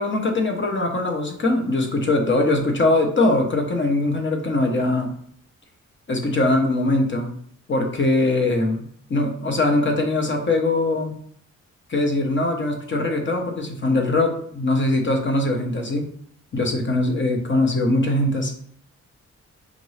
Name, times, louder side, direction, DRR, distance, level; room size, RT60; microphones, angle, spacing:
voice 1, 0.0-5.1 6.1-7.3 7.7-11.2 11.9-16.1 16.5-18.5, left 2 dB, 40° left, 3 dB, 0.9 m, -21 dB
5.1 x 2.6 x 3.2 m, 0.63 s
cardioid pair, 80°, 30 cm